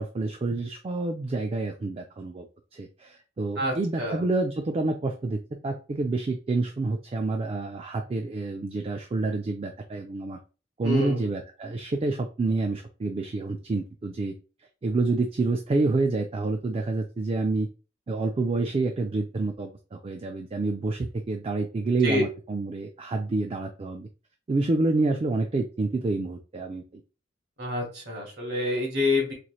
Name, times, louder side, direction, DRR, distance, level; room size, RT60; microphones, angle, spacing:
voice 1, 0.0-2.5 2.7-10.4 10.8-14.3 14.8-17.7 18.1-24.1 24.5-27.0, right 3 dB, 30° right, 4 dB, 0.3 m, -28 dB
voice 2, 3.6-4.2 10.8-11.3 22.0-22.2 27.6-29.3, left 2 dB, 60° right, -1 dB, 2.0 m, -27 dB
4.2 x 3.1 x 2.3 m, 0.34 s
head